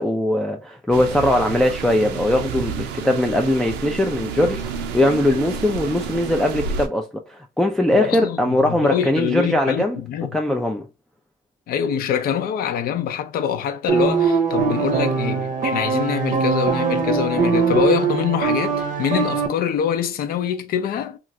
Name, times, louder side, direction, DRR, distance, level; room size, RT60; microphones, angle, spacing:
voice 1, 0.0-10.0 10.3-10.9, left 1 dB, 5° left, 0.3 m, -20 dB
sound 1, 0.9-6.9, right 6 dB, 90° right, 0.5 m, -30 dB
voice 2, 7.9-10.4 11.7-21.2, left 9 dB, 60° left, 0.5 m, -24 dB
sound 2, 13.9-19.5, right 5 dB, 50° right, 0.6 m, -21 dB
3.0 x 2.4 x 2.6 m
cardioid pair, 110°, 17 cm